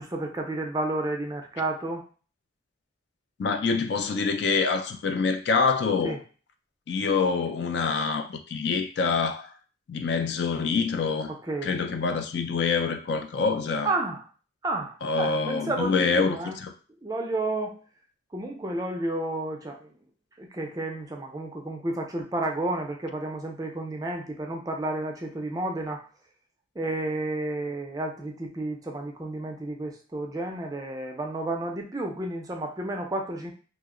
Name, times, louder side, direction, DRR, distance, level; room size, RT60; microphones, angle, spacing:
voice 1, 0.0-2.0 6.0-6.2 11.3-11.7 13.8-14.2 14.6-16.6 17.0-17.8 18.3-19.9 20.4-26.0 26.8-33.5, right 2 dB, 20° right, 0.4 m, -31 dB
voice 2, 3.4-6.2 6.9-9.5 9.9-11.3 11.6-13.9 15.0-16.7, left 4 dB, 55° left, 0.3 m, -26 dB
2.8 x 2.0 x 3.6 m
head